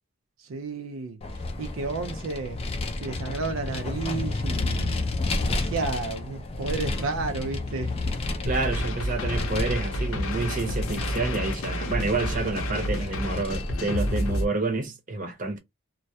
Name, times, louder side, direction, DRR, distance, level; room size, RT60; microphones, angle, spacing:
voice 1, 0.4-5.0 5.4-8.0, right 3 dB, 70° right, 0.4 m, -32 dB
Vehicle, 1.2-14.4, left 2 dB, 25° left, 0.3 m, -32 dB
sound 1, 8.4-14.5, left 1 dB, 80° left, 0.6 m, -30 dB
voice 2, 8.4-15.6, right 3 dB, 40° right, 0.7 m, -29 dB
2.2 x 2.1 x 2.6 m
head